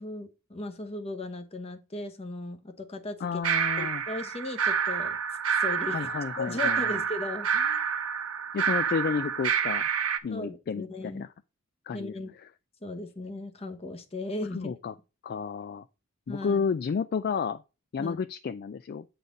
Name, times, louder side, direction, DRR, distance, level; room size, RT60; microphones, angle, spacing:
voice 1, 0.0-3.4 3.8-5.2 5.5-6.1 6.4-7.8 10.3-11.2 11.9-12.3 12.8-14.8 16.3-16.6 18.0-18.2, left 2 dB, 30° left, 1.0 m, -37 dB
voice 2, 3.2-4.0 5.9-7.0 8.5-9.9 10.2-11.3 11.9-12.1 14.5-14.9 15.2-15.8 16.3-17.6 17.9-19.1, left 6 dB, 45° left, 0.3 m, -31 dB
sound 1, 3.4-10.2, right 7 dB, 90° right, 0.9 m, -28 dB
8.3 x 4.0 x 5.1 m
head